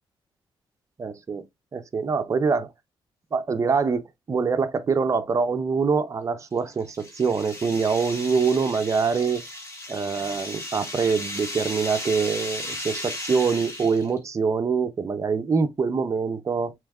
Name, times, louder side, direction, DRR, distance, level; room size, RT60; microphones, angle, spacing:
voice 1, 1.0-1.5 1.7-2.7 3.3-9.4 9.9-16.7, right 5 dB, 35° right, 0.6 m, -24 dB
sound 1, 6.4-14.2, left 1 dB, 30° left, 1.9 m, -35 dB
7.0 x 3.1 x 2.3 m
cardioid pair, 100°, 9 cm